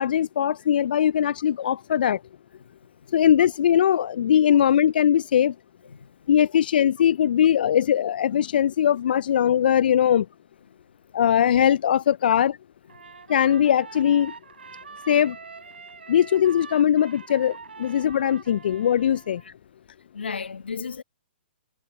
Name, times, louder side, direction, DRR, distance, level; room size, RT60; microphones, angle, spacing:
voice 1, 0.0-2.2 3.1-5.5 6.3-10.3 11.1-12.5 13.3-14.3 15.1-15.4 16.1-19.4, left 9 dB, 60° left, 0.4 m, -20 dB
Trumpet, 12.9-19.5, right 5 dB, 80° right, 4.5 m, -44 dB
voice 2, 20.1-21.0, left 5 dB, 80° left, 1.1 m, -34 dB
hypercardioid pair, 125°, 6 cm